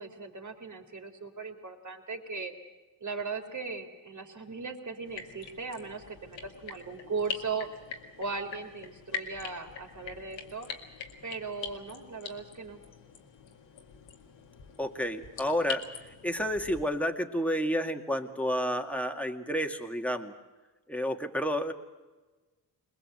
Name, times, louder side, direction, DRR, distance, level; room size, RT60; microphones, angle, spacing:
voice 1, 0.0-2.5 3.0-7.7 8.2-10.7 11.2-12.8, right 4 dB, 40° right, 4 dB, 3.4 m, -38 dB
sound 1, 5.0-16.8, left 6 dB, 90° left, 2.1 m, -43 dB
voice 2, 14.8-15.8 16.2-20.3 20.9-21.7, equal, 5° left, 5 dB, 2.1 m, -30 dB
21.5 x 21.0 x 8.0 m, 1.2 s
cardioid pair, 65°, 44 cm